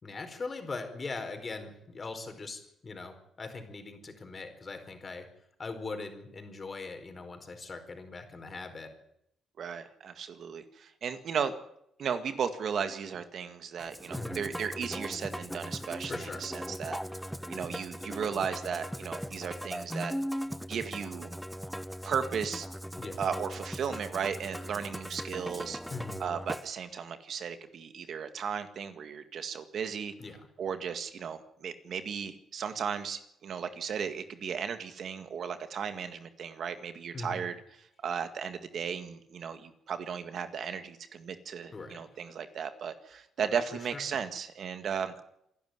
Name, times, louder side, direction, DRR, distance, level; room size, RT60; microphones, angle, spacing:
voice 1, 0.0-5.3 5.6-8.9 14.1-14.4 16.1-16.5 23.0-23.2 25.9-26.2 30.2-30.4 37.1-37.4 41.7-42.0 43.9-44.0, left 3 dB, 35° left, 6 dB, 4.6 m, -40 dB
voice 2, 9.6-11.5 12.0-17.0 17.5-20.1 20.7-21.3 22.0-22.7 23.2-25.8 26.2-30.1 30.6-37.5 38.0-45.2, right 7 dB, 60° right, 10 dB, 1.9 m, -35 dB
Musical instrument, 13.8-26.7, equal, ahead, 0.7 m, -39 dB
27.0 x 11.5 x 9.6 m, 0.78 s
cardioid pair, 90°, 0 cm